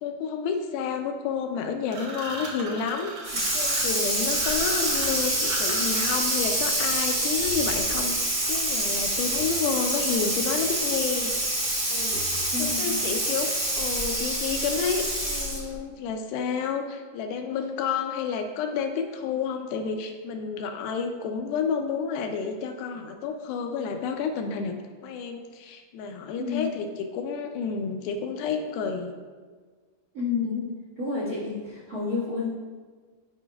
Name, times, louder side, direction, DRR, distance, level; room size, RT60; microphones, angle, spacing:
voice 1, 0.0-3.1 3.5-11.4 11.9-24.8 25.0-29.1, left 6 dB, 80° left, 5 dB, 2.2 m, -30 dB
sound 1, 1.9-6.5, right 3 dB, 85° right, 1.4 m, -38 dB
Water tap faucet / Sink (filling or washing), 3.2-15.7, right 1 dB, 50° right, 1.2 m, -26 dB
voice 2, 12.5-13.2 26.4-26.7 30.1-30.6 31.0-32.5, left 5 dB, 65° right, -9 dB, 0.8 m, -30 dB
11.5 x 5.2 x 2.3 m, 1.5 s
omnidirectional pair, 4.5 m